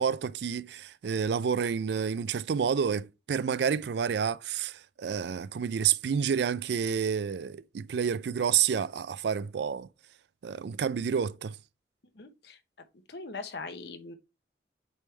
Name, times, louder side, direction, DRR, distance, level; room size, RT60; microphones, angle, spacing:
voice 1, 0.0-9.9 10.4-11.6, right 7 dB, 70° right, 0.4 m, -29 dB
voice 2, 12.1-12.6 13.1-14.2, left 3 dB, 70° left, 0.9 m, -40 dB
8.3 x 3.5 x 3.2 m
head